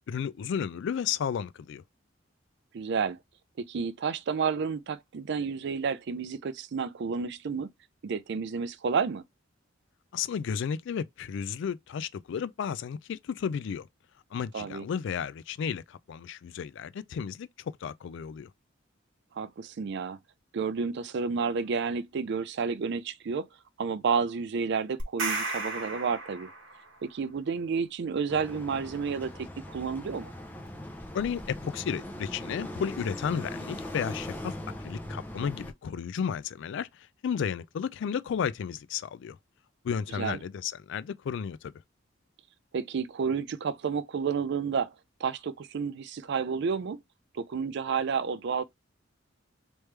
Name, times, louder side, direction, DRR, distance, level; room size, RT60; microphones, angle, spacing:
voice 1, 0.1-1.8 10.1-13.9 14.3-17.5 17.8-18.5 31.1-34.5 34.8-39.4 39.8-41.7, left 7 dB, 65° left, 0.3 m, -33 dB
voice 2, 2.7-3.2 3.7-7.7 8.0-9.2 14.5-14.8 19.4-20.2 20.5-23.5 23.8-26.5 27.0-30.3 40.1-40.4 42.7-44.9 45.2-47.0 47.3-48.6, right 5 dB, 60° right, 0.4 m, -30 dB
sound 1, 25.0-27.0, right 3 dB, 80° right, 1.1 m, -34 dB
sound 2, 28.3-35.7, left 1 dB, 10° left, 0.6 m, -40 dB
3.3 x 3.1 x 3.2 m
head